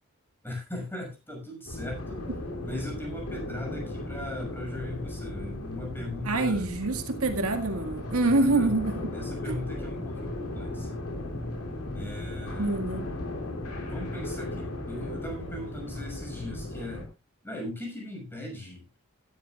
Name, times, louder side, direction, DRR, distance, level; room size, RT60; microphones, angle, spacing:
voice 1, 0.4-2.2 2.6-6.8 8.2-8.7 9.1-11.0 11.9-12.8 13.8-17.1 17.4-18.8, left 1 dB, 10° left, 6.4 m, -38 dB
sound 1, 1.7-17.1, left 1 dB, 90° left, 3.1 m, -36 dB
voice 2, 6.2-9.0 9.5-9.6 12.6-13.0, right 2 dB, 85° right, 2.0 m, -26 dB
17.0 x 12.0 x 2.5 m
head